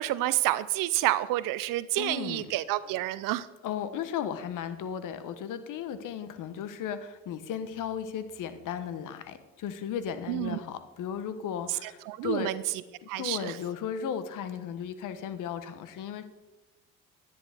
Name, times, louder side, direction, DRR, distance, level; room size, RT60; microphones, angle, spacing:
voice 1, 0.0-3.5 10.3-10.6 12.1-12.5 13.1-13.4, right 16 dB, 75° right, 16 dB, 0.5 m, -29 dB
voice 2, 2.0-2.5 2.9-3.0 3.6-12.5 13.0-16.2, left 8 dB, 70° left, 11 dB, 1.1 m, -35 dB
11.0 x 10.0 x 3.5 m, 1.1 s
supercardioid pair, 80°, 33 cm